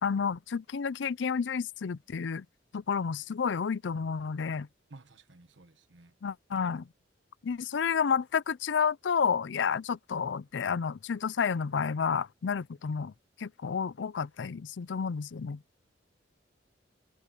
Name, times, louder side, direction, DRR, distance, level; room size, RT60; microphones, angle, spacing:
voice 1, 0.0-2.4 2.7-4.7 6.2-6.9 7.4-13.1 13.4-15.6, left 6 dB, 75° left, 0.5 m, -30 dB
voice 2, 4.9-6.1, right 2 dB, 80° right, 1.3 m, -54 dB
head